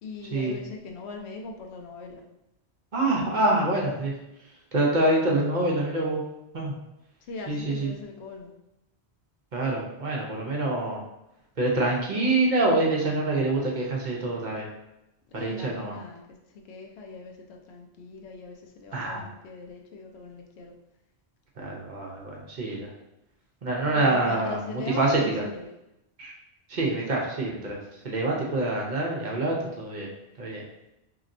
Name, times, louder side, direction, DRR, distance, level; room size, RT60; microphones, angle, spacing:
voice 1, 0.0-2.2 7.2-8.5 15.3-16.2 16.6-20.7 23.9-25.7, left 3 dB, 85° left, 2 dB, 0.9 m, -40 dB
voice 2, 2.9-4.2 4.7-6.2 6.5-6.8 7.5-7.9 9.5-11.0 11.6-14.7 15.4-16.0 18.9-19.3 21.6-22.9 23.6-25.4 26.2-26.3 26.7-30.1 30.4-30.6, right 2 dB, 50° right, -2 dB, 0.8 m, -26 dB
4.1 x 2.9 x 2.6 m, 0.88 s
omnidirectional pair, 1.1 m